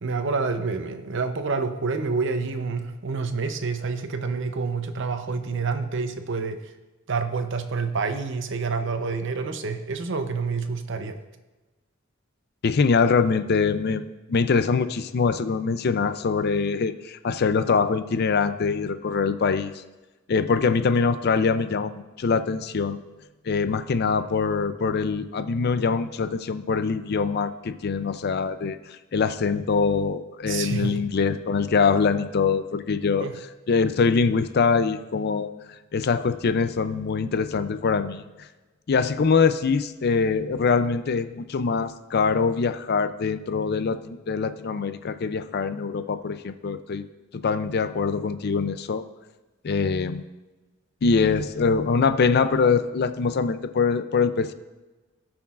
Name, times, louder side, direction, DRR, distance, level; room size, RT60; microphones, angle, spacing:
voice 1, 0.0-6.6 7.1-11.2 30.5-30.9 33.2-33.3, right 4 dB, 60° right, 8 dB, 0.7 m, -28 dB
voice 2, 12.6-19.8 20.3-23.0 23.4-33.3 33.7-35.5 35.9-38.5 38.9-47.0 47.3-49.0 49.6-50.2 51.0-54.5, left 5 dB, 50° left, 11 dB, 0.4 m, -23 dB
18.0 x 6.1 x 2.5 m, 1.2 s
head